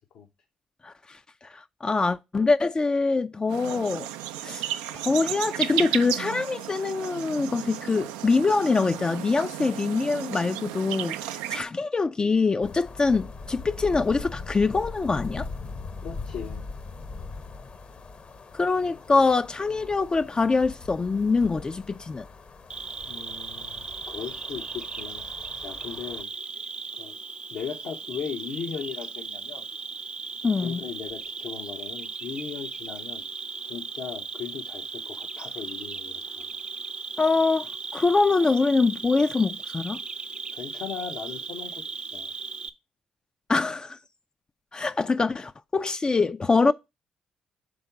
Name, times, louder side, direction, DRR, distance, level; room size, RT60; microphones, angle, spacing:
voice 1, 0.8-1.2 1.5-4.1 4.4-4.7 4.9-15.5 18.5-22.3 30.4-30.8 37.2-40.0 43.5-44.0 44.7-46.7, left 4 dB, 30° left, 0.3 m, -24 dB
sound 1, 3.5-11.6, right 12 dB, 85° right, 0.3 m, -33 dB
sound 2, 12.6-26.2, left 3 dB, 45° left, 0.8 m, -41 dB
voice 2, 16.0-16.6 18.8-19.3 19.7-19.9 23.1-25.2 25.6-26.3 27.0-27.2 27.5-29.7 30.6-33.2 33.6-36.5 40.5-41.8 42.1-42.3, left 7 dB, 70° left, 0.9 m, -38 dB
Cricket, 22.7-42.7, right 4 dB, 35° right, 0.5 m, -37 dB
5.2 x 3.7 x 5.7 m
hypercardioid pair, 50°, 3 cm